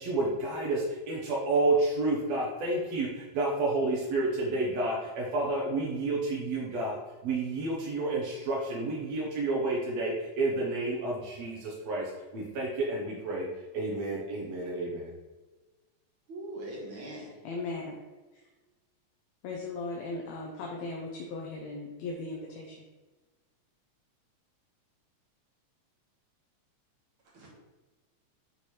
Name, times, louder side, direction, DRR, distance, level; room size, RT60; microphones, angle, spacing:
voice 1, 0.0-15.1, right 2 dB, 70° right, -3 dB, 2.1 m, -30 dB
voice 2, 16.3-17.4 27.3-27.5, right 1 dB, 50° right, -3 dB, 1.9 m, -41 dB
voice 3, 17.5-18.0 19.4-22.8, left 3 dB, 75° left, -1 dB, 1.9 m, -37 dB
8.2 x 3.3 x 4.3 m, 1.2 s
omnidirectional pair, 3.3 m